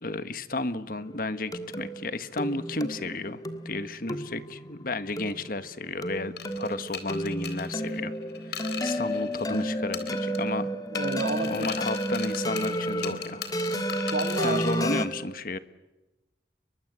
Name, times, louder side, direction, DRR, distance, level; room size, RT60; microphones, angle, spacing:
voice 1, 0.0-8.1 8.4-10.7 11.5-13.4 14.4-15.6, left 2 dB, 50° left, 11 dB, 1.5 m, -33 dB
sound 1, 0.9-15.1, equal, 20° left, 1.6 m, -32 dB
sound 2, 6.4-9.6 9.9-10.6 11.0-14.8, left 7 dB, 70° left, 3.7 m, -39 dB
voice 2, 10.9-11.8 14.1-14.6, right 2 dB, 70° right, 8 dB, 1.8 m, -30 dB
30.0 x 23.5 x 8.2 m, 1.1 s
head